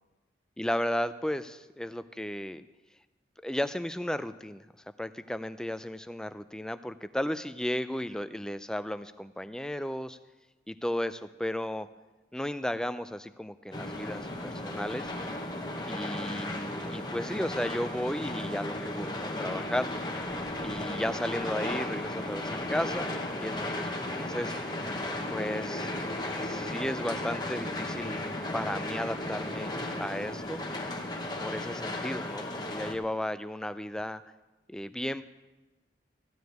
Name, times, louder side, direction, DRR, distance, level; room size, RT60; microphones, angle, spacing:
voice 1, 0.6-2.6 3.4-4.7 5.0-10.2 10.7-11.9 12.3-14.3 14.6-15.1 15.9-19.9 20.6-24.5 25.3-25.9 26.4-28.2 28.5-29.7 30.0-30.6 31.4-34.2 34.7-35.2, left 1 dB, 5° left, 12 dB, 0.3 m, -34 dB
sound 1, 13.7-32.9, left 1 dB, 25° left, 1.0 m, -35 dB
14.5 x 4.9 x 9.2 m, 1.1 s
head